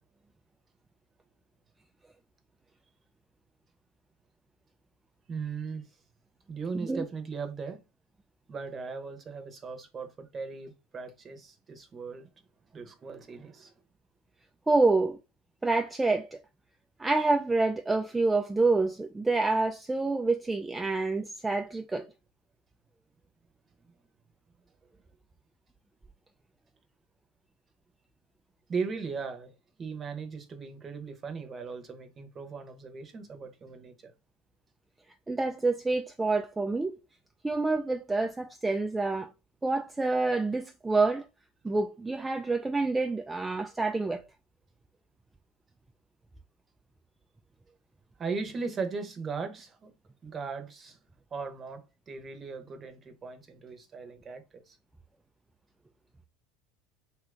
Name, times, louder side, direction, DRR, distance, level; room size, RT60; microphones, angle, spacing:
voice 1, 5.3-5.9 6.5-7.8 8.5-12.3 12.7-13.7 23.9-24.0 28.7-29.5 29.8-34.1 48.2-49.9 50.2-51.0 51.3-54.8, right 5 dB, 30° right, 0.8 m, -38 dB
voice 2, 14.7-15.2 15.6-16.4 17.0-22.1 35.3-37.0 37.4-39.3 39.6-41.3 41.6-44.2, right 3 dB, 15° right, 0.3 m, -27 dB
2.7 x 2.4 x 3.3 m
hypercardioid pair, 95°, 0 cm